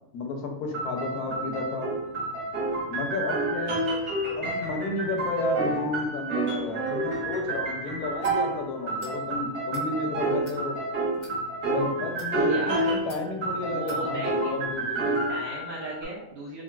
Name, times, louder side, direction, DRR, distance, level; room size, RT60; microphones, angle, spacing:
voice 1, 0.1-1.9 2.9-3.9 4.4-10.8 11.6-15.2, left 3 dB, 85° left, 3 dB, 1.1 m, -32 dB
sound 1, 0.7-8.6 8.9-13.1 13.4-16.0, right 2 dB, 55° right, 1.1 m, -29 dB
sound 2, 8.2-8.4 9.0-9.2 9.6-9.9 10.4-10.6 11.1-11.4 12.0-12.3 13.1-13.3 13.9-14.0, left 2 dB, 60° left, 0.6 m, -47 dB
voice 2, 12.5-12.9 13.7-14.5 15.3-16.6, right 1 dB, 70° right, -4 dB, 0.6 m, -36 dB
3.7 x 2.1 x 2.3 m, 0.85 s
omnidirectional pair, 1.6 m